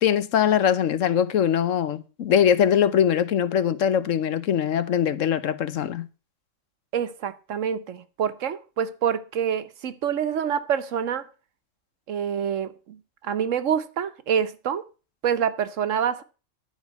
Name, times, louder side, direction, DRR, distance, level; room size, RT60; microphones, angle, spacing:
voice 1, 0.0-6.1, left 9 dB, 85° left, 1.2 m, -22 dB
voice 2, 6.9-11.3 12.1-14.8 15.2-16.2, right 8 dB, 80° right, 1.3 m, -26 dB
11.5 x 5.1 x 8.1 m
omnidirectional pair, 1.3 m